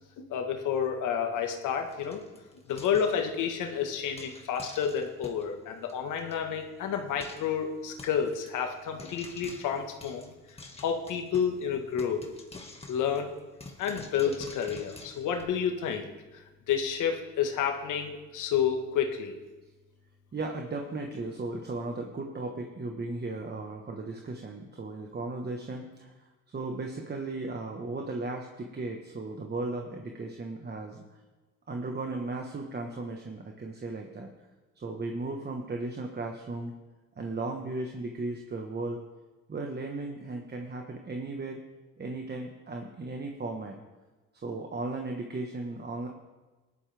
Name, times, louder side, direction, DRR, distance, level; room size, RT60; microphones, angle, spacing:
voice 1, 0.2-2.2 2.7-10.3 10.8-12.2 12.9-13.3 13.8-16.1 16.7-19.3, left 7 dB, 85° left, 4 dB, 1.5 m, -30 dB
Frying (food), 1.7-3.7 4.2-5.5 5.9-6.0 6.2-6.3 6.6-6.7 7.2-7.5 8.0-8.5 9.0-11.6 12.0-15.4, left 3 dB, 20° left, 1.9 m, -48 dB
voice 2, 20.3-26.1 26.5-31.0 31.7-34.3 34.8-36.7 37.2-39.0 39.5-41.6 42.0-43.8 44.4-46.1, right 2 dB, 35° right, 2 dB, 1.3 m, -36 dB
17.5 x 11.5 x 3.5 m, 1.2 s
cardioid pair, 90°, 30 cm